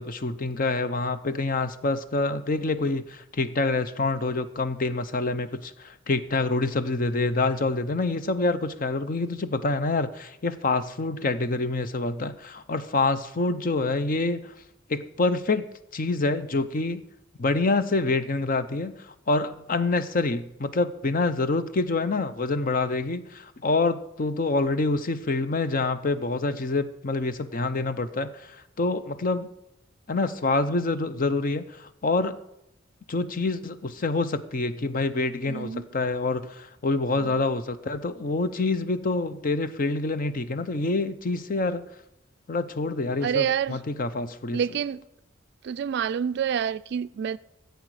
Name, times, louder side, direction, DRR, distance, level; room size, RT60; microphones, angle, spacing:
voice 1, 0.0-14.5 14.9-15.6 15.9-17.0 17.4-29.5 30.1-32.4 33.1-41.8 42.5-44.6, left 3 dB, 45° left, 0.6 m, -26 dB
voice 2, 35.5-35.9 43.2-43.8 44.5-45.0 45.6-47.4, right 8 dB, 60° right, 0.3 m, -27 dB
15.0 x 8.1 x 4.8 m
head